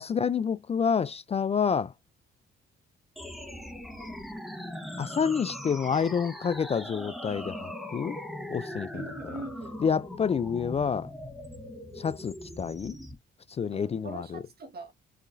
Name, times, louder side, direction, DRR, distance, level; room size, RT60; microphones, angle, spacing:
voice 1, 0.0-1.9 5.0-8.2 8.5-8.9 9.8-11.1 12.0-13.0 13.5-14.2, left 6 dB, 30° left, 0.4 m, -28 dB
sound 1, 3.2-13.2, left 1 dB, ahead, 1.2 m, -40 dB
voice 2, 8.9-9.8 13.7-14.9, right 3 dB, 55° right, 1.5 m, -42 dB
4.8 x 3.0 x 2.6 m
cardioid pair, 90°, 20 cm